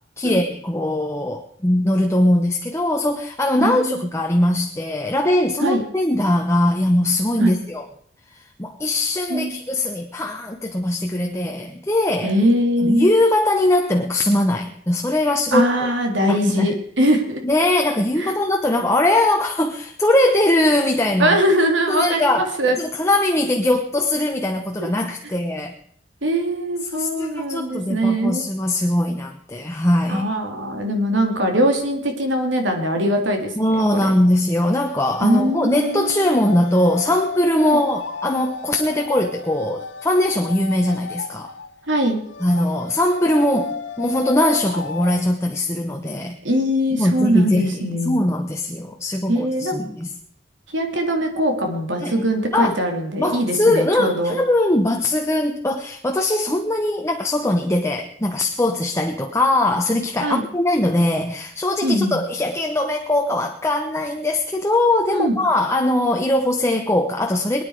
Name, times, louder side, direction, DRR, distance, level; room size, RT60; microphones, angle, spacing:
voice 1, 0.2-7.9 8.6-12.3 12.8-15.9 16.3-16.7 17.4-21.4 21.9-22.5 22.8-25.8 26.9-30.2 33.6-41.5 42.4-46.4 46.9-50.1 52.0-52.1 52.5-52.8 53.2-67.6, left 1 dB, 15° left, 3 dB, 1.0 m, -21 dB
voice 2, 3.6-4.1 5.6-5.8 7.4-7.5 9.3-9.5 12.2-13.1 15.5-17.4 18.2-18.3 21.2-22.8 24.8-24.9 26.2-28.4 30.1-33.5 33.9-34.1 35.2-36.2 37.6-37.8 41.9-42.2 46.4-48.2 49.3-49.8 50.7-54.3 60.2-60.4 61.8-62.2 65.1-65.4, equal, 75° right, 4 dB, 3.1 m, -21 dB
sound 1, 34.2-45.2, left 5 dB, 90° left, 1.1 m, -33 dB
24.0 x 9.8 x 4.9 m, 0.65 s
head